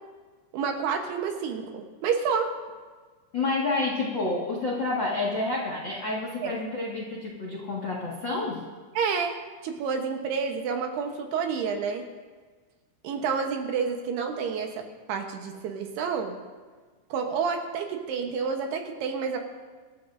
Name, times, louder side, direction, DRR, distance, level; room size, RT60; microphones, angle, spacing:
voice 1, 0.5-2.5 6.4-6.5 9.0-9.3 9.6-12.0 13.0-16.3 17.1-19.4, right 6 dB, 70° right, 4 dB, 2.8 m, -29 dB
voice 2, 3.3-8.6, left 3 dB, 90° left, -3 dB, 1.0 m, -29 dB
25.5 x 13.5 x 2.6 m, 1.4 s
omnidirectional pair, 5.3 m